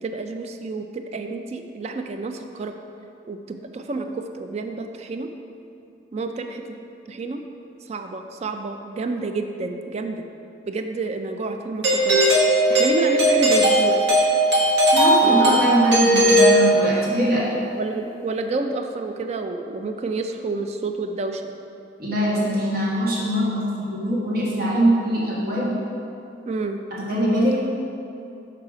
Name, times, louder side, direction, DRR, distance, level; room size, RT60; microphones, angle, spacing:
voice 1, 0.0-2.7 3.3-5.3 6.1-6.8 7.1-7.4 7.9-10.2 10.6-12.2 12.7-14.2 15.2-15.6 17.8-21.4 26.5-26.8, right 3 dB, 35° right, 6 dB, 0.3 m, -29 dB
Doorbell, 11.8-17.3, right 1 dB, 80° right, 1.4 m, -18 dB
voice 2, 14.9-17.4 22.0-25.7 26.9-27.6, equal, 60° right, -6 dB, 1.4 m, -22 dB
6.4 x 4.7 x 4.8 m, 2.7 s
head